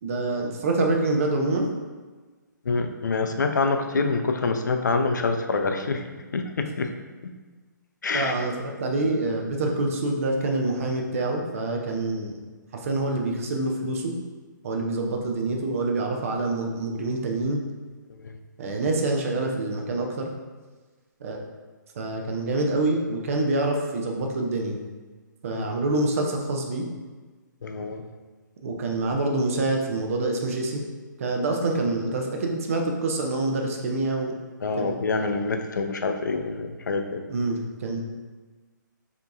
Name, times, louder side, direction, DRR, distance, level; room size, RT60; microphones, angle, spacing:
voice 1, 0.0-1.7 8.1-12.4 12.7-14.1 14.6-17.6 18.6-20.3 21.2-21.5 22.0-24.8 25.4-26.8 28.6-30.8 31.2-34.3 34.8-34.9 37.3-38.0, right 2 dB, 45° right, 1 dB, 0.6 m, -26 dB
voice 2, 2.7-6.1 6.3-6.9 7.2-7.3 8.0-8.3 18.2-18.4 25.5-25.6 27.6-28.1 34.6-37.2, left 4 dB, 65° left, 5 dB, 0.4 m, -26 dB
4.4 x 2.9 x 2.6 m, 1.3 s
figure-of-eight pair, 130°, 11 cm